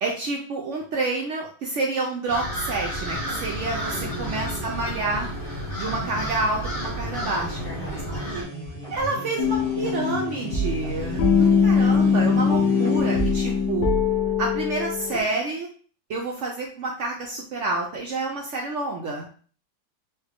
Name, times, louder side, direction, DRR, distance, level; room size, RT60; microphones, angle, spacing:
voice 1, 0.0-5.3 5.8-7.6 8.1-8.4 8.9-13.9 14.4-15.7 16.1-19.3, right 3 dB, 80° right, 0 dB, 0.6 m, -28 dB
sound 1, 2.3-8.4, right 1 dB, 90° left, 2.2 m, -32 dB
sound 2, 2.7-13.7, equal, 35° left, 0.6 m, -37 dB
voice 2, 4.0-4.5 7.4-8.5, equal, 20° right, -5 dB, 0.6 m, -41 dB
sound 3, 9.4-15.2, left 5 dB, 70° left, 1.2 m, -22 dB
4.3 x 2.1 x 3.4 m, 0.43 s
omnidirectional pair, 1.9 m